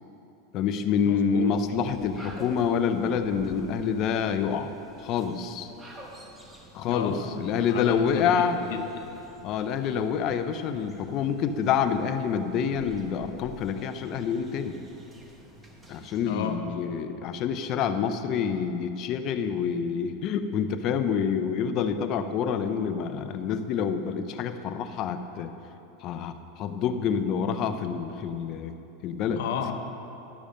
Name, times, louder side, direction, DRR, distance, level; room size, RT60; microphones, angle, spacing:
voice 1, 0.5-4.7 5.0-5.7 6.7-8.6 9.4-14.8 15.9-25.5 26.0-28.7 29.0-29.4, left 7 dB, 40° left, 8 dB, 0.6 m, -27 dB
voice 2, 1.1-1.5 6.8-8.4 8.7-8.8 16.3-17.0 29.4-29.7, left 7 dB, 75° left, 6 dB, 0.9 m, -33 dB
sound 1, 1.6-16.5, right 1 dB, 10° right, 1.1 m, -50 dB
11.5 x 7.1 x 5.2 m, 2.9 s
supercardioid pair, 140°, 0 cm